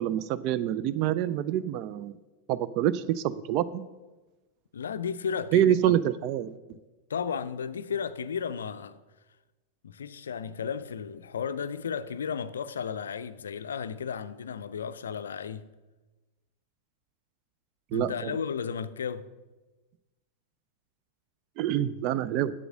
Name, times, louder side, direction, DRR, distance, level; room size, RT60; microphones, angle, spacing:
voice 1, 0.0-2.2 2.5-3.9 5.5-6.5 17.9-18.3 21.6-22.5, right 11 dB, 40° right, 0.3 m, -26 dB
voice 2, 4.7-5.8 7.1-9.0 9.8-15.7 17.9-19.3, left 7 dB, 65° left, 0.4 m, -34 dB
7.8 x 7.4 x 6.3 m
figure-of-eight pair, 90°, 0 cm